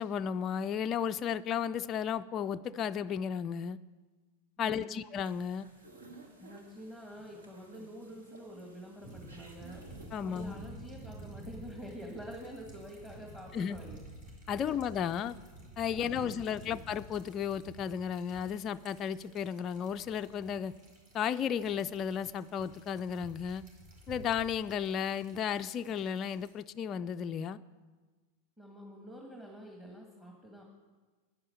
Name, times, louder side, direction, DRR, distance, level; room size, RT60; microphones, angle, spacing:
voice 1, 0.0-3.8 4.6-5.7 10.1-10.5 13.5-13.8 14.5-15.4 15.8-20.7 21.1-23.6 24.1-27.6, left 8 dB, 30° left, 10 dB, 0.3 m, -34 dB
voice 2, 4.6-5.0 6.4-14.0 14.6-14.8 15.1-15.4 16.0-16.7 28.6-30.6, equal, 10° right, 0 dB, 1.8 m, -47 dB
sound 1, 5.2-10.5, right 3 dB, 65° right, 2.1 m, -56 dB
sound 2, 9.0-26.5, right 1 dB, 45° right, 4.6 m, -51 dB
11.0 x 10.0 x 6.7 m, 1.3 s
figure-of-eight pair, 90°, 0 cm